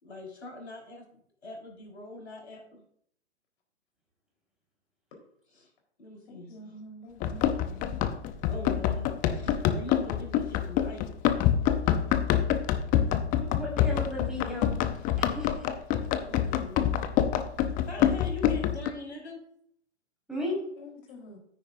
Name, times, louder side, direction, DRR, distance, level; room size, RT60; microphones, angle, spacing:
voice 1, 0.0-2.8 5.5-5.7 6.0-6.8 8.4-11.1 16.1-16.9 17.8-19.4, left 2 dB, 75° left, -1 dB, 4.7 m, -42 dB
voice 2, 6.3-8.0 20.8-21.4, equal, 50° left, 1 dB, 4.2 m, -47 dB
Run, 7.2-18.9, left 10 dB, 25° left, 0.7 m, -26 dB
voice 3, 13.4-14.8 15.2-15.7 20.3-20.6, left 1 dB, ahead, -4 dB, 4.7 m, -34 dB
13.5 x 9.7 x 2.6 m, 0.68 s
figure-of-eight pair, 115°, 34 cm